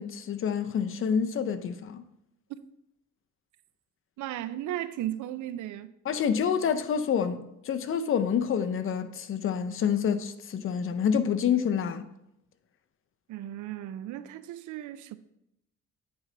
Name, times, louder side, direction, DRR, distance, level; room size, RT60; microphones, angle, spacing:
voice 1, 0.0-2.0 6.1-12.1, left 7 dB, 45° left, 0.6 m, -28 dB
voice 2, 4.2-5.9 13.3-15.1, right 12 dB, 75° right, 0.5 m, -35 dB
8.8 x 3.3 x 3.9 m
cardioid pair, 90°, 30 cm